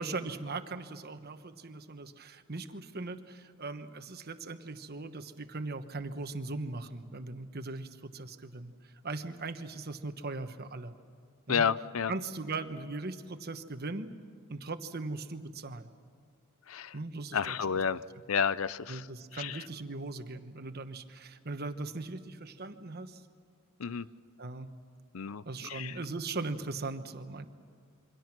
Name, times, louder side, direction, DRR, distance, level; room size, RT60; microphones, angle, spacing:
voice 1, 0.0-10.9 11.5-11.7 12.1-14.1 14.5-15.9 16.9-17.8 18.9-23.2 24.4-24.7 25.4-27.5, right 3 dB, 50° right, 9 dB, 1.2 m, -39 dB
voice 2, 11.5-12.1 16.7-16.9 17.3-18.0 18.3-19.0 19.4-19.5 23.8-24.1 25.1-25.9, left 7 dB, 80° left, 17 dB, 0.6 m, -30 dB
28.0 x 24.0 x 6.1 m, 2.1 s
head